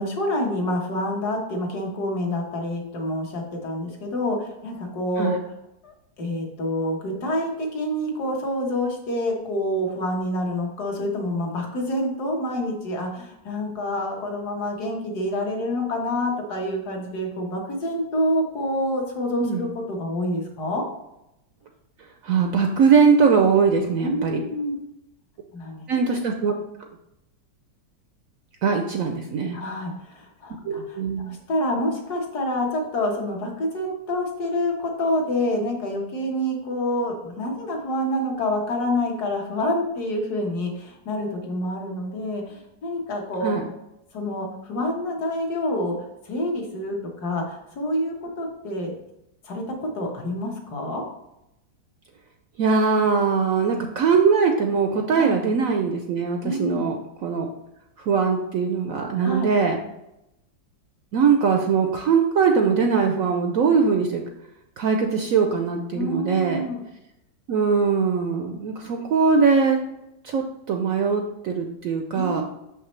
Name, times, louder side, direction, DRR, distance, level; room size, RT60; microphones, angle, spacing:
voice 1, 0.0-5.3 5.8-20.9 24.0-24.8 25.5-25.9 29.5-43.5 44.1-46.0 46.3-48.9 49.4-51.0 55.2-55.4 56.4-56.9 59.2-59.5 65.9-66.8 72.1-72.4, left 1 dB, 60° left, 1 dB, 1.8 m, -27 dB
voice 2, 22.2-24.4 25.9-26.5 28.6-29.6 30.6-31.4 43.4-43.6 52.6-57.0 57.2-57.5 58.0-59.8 61.1-64.2 64.8-66.6 67.5-69.8 70.2-72.4, right 5 dB, 70° right, 4 dB, 0.8 m, -21 dB
6.3 x 5.7 x 3.2 m, 0.88 s
omnidirectional pair, 2.0 m